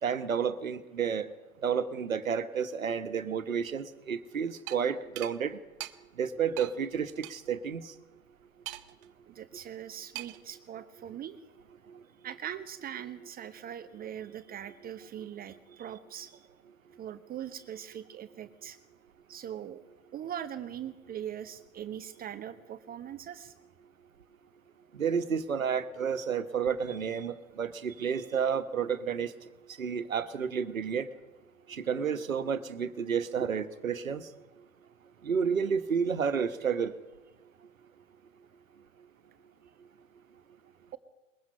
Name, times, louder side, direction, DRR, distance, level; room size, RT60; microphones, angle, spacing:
voice 1, 0.0-1.3 1.6-5.6 6.2-7.8 25.0-29.3 29.8-31.1 31.7-34.2 35.2-36.9, right 7 dB, 80° right, 10 dB, 1.5 m, -31 dB
sound 1, 4.7-4.8 5.2-5.3 5.8-5.9 6.6-6.7 7.2-7.3 8.7-9.0 10.1-10.5, right 19 dB, 40° right, 1.4 m, -40 dB
voice 2, 9.3-11.4 12.2-16.5 17.0-18.8 19.3-19.8 20.1-23.5, right 10 dB, 20° right, 10 dB, 0.9 m, -41 dB
22.0 x 21.5 x 5.7 m, 1.2 s
figure-of-eight pair, 100°, 40 cm